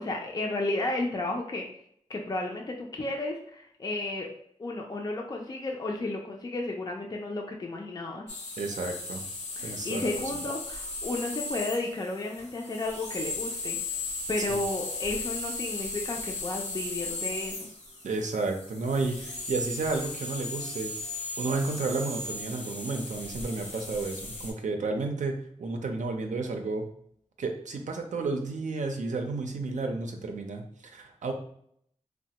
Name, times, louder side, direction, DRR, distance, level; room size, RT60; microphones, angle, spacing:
voice 1, 0.0-1.7 2.1-4.3 4.6-8.3 9.6-13.8 14.3-17.7, left 2 dB, 35° left, 0 dB, 0.4 m, -33 dB
sound 1, 8.3-24.5, left 2 dB, 65° left, 0.8 m, -37 dB
voice 2, 8.6-9.2 9.6-10.0 14.5-14.6 18.0-20.9 21.4-26.9 27.4-31.3, right 3 dB, 85° right, 4 dB, 0.5 m, -32 dB
3.1 x 2.1 x 2.8 m, 0.67 s
wide cardioid pair, 100°, 12 cm